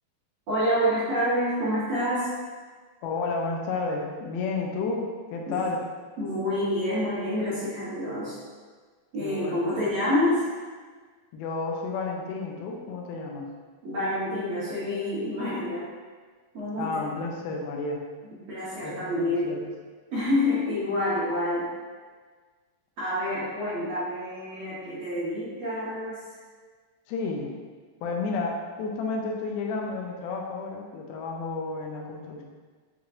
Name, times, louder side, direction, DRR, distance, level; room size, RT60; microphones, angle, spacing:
voice 1, 0.5-2.3 5.5-5.6 6.2-8.4 9.1-10.5 13.8-15.9 16.5-17.0 18.5-19.5 20.1-21.7 23.0-26.2, left 1 dB, 65° right, -12 dB, 1.8 m, -27 dB
voice 2, 3.0-5.8 9.2-9.7 11.3-13.5 16.8-18.0 18.8-19.6 27.1-27.5 28.0-32.4, left 3 dB, 90° left, 0 dB, 2.4 m, -31 dB
6.4 x 3.0 x 2.4 m, 1.5 s
omnidirectional pair, 4.2 m